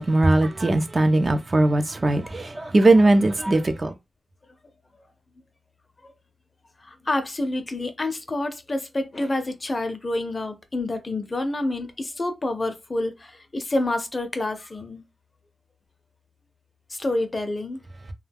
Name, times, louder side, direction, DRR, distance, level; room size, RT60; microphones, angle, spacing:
voice 1, 0.0-3.9, right 2 dB, 40° right, 0.6 m, -19 dB
voice 2, 6.8-15.0 16.9-17.8, left 2 dB, 35° left, 0.6 m, -28 dB
2.2 x 2.2 x 3.4 m
cardioid pair, 65°, 0 cm